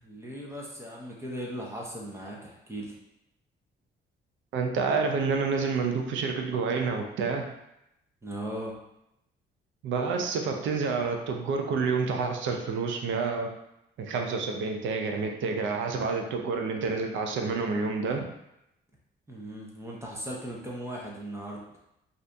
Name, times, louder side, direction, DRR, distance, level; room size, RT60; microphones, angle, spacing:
voice 1, 0.0-2.9 8.2-8.7 19.3-21.6, right 1 dB, 15° right, -3 dB, 0.8 m, -38 dB
voice 2, 4.5-7.5 9.8-13.5 14.0-18.2, right 4 dB, 75° right, 3 dB, 0.6 m, -28 dB
2.6 x 2.6 x 3.4 m, 0.83 s
cardioid pair, 90°, 20 cm